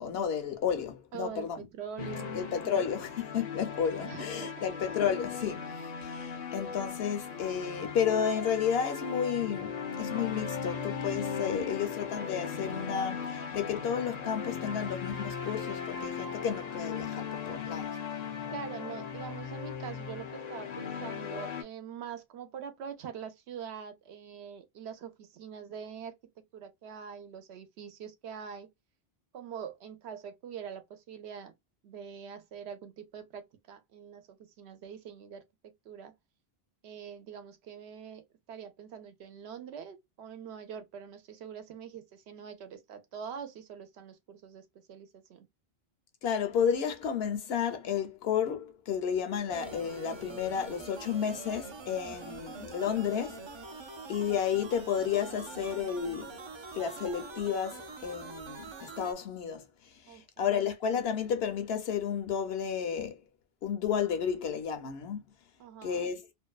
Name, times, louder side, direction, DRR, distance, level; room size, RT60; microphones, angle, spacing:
voice 1, 0.0-1.7 2.3-18.0 46.2-53.5 54.1-56.4 56.7-63.2 63.6-65.2 65.8-66.3, left 8 dB, 75° left, 0.9 m, -32 dB
voice 2, 1.1-2.8 4.0-4.5 11.6-11.9 18.5-28.7 29.3-31.5 31.8-36.1 36.8-45.5 52.1-52.4 60.1-60.6 65.6-66.1, right 7 dB, 90° right, 0.9 m, -44 dB
sound 1, 2.0-21.6, left 6 dB, 50° left, 0.5 m, -38 dB
sound 2, 49.5-59.1, right 4 dB, 45° right, 0.3 m, -45 dB
2.6 x 2.2 x 2.2 m
omnidirectional pair, 1.1 m